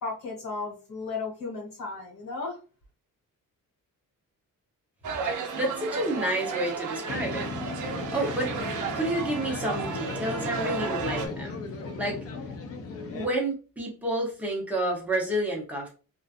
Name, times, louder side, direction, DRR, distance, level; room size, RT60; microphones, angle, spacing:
voice 1, 0.0-2.6, left 4 dB, 85° left, -1 dB, 1.4 m, -35 dB
sound 1, 5.0-11.3, right 5 dB, 65° right, 0.5 m, -33 dB
voice 2, 5.5-7.6 7.9-8.5 8.9-11.5 12.0-12.2 13.1-15.9, right 1 dB, 5° right, -2 dB, 0.7 m, -30 dB
sound 2, 7.1-13.3, left 4 dB, 45° left, 0.4 m, -36 dB
2.5 x 2.3 x 2.4 m, 0.35 s
wide cardioid pair, 175°, 33 cm